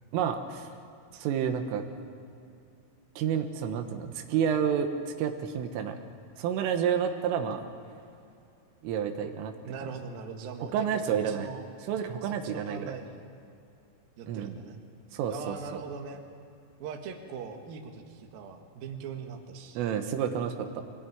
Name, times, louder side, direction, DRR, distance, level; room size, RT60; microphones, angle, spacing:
voice 1, 0.1-0.7 1.1-1.8 3.2-6.0 6.4-7.6 8.8-9.5 10.7-11.5 11.9-12.9 14.3-14.5 15.1-15.8 19.8-20.8, right 8 dB, 90° right, 6 dB, 3.8 m, -30 dB
voice 2, 9.6-11.7 12.2-13.2 14.2-14.8 15.3-16.2 16.8-19.8, right 5 dB, 60° right, 3 dB, 2.9 m, -41 dB
24.5 x 18.5 x 9.3 m, 2.5 s
omnidirectional pair, 5.8 m